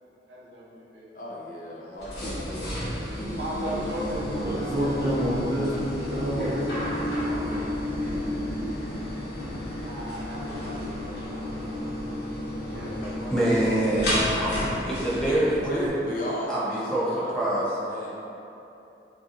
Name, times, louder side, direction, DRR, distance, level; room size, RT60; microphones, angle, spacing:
voice 1, 0.3-1.1 3.3-5.5 7.2-7.9 9.7-12.2 12.7-13.6, right 1 dB, 90° right, -5 dB, 0.8 m, -38 dB
voice 2, 1.1-3.0 15.2-18.2, left 1 dB, 50° left, -4 dB, 0.6 m, -35 dB
sound 1, 2.0-15.9, left 1 dB, 65° left, 1.4 m, -31 dB
voice 3, 4.3-6.6, equal, 55° right, -8 dB, 0.9 m, -28 dB
voice 4, 13.3-14.5 14.9-15.9 16.5-17.7, right 1 dB, 5° left, -9 dB, 0.7 m, -25 dB
5.3 x 2.8 x 2.6 m, 2.9 s
head